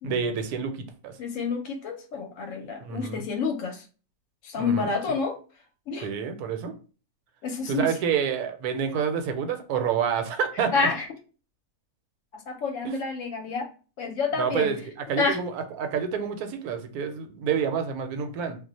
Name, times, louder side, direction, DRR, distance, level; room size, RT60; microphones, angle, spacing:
voice 1, 0.0-1.1 2.8-3.2 4.6-4.9 6.0-6.7 7.7-10.9 12.8-13.0 14.4-14.8 15.1-18.6, right 7 dB, 85° right, 7 dB, 1.1 m, -28 dB
voice 2, 1.2-3.8 4.4-5.4 5.9-6.1 7.4-7.9 10.5-11.1 12.3-13.7 14.0-14.7 15.2-15.4, left 4 dB, 70° left, 3 dB, 0.9 m, -28 dB
2.4 x 2.1 x 3.9 m, 0.37 s
omnidirectional pair, 1.6 m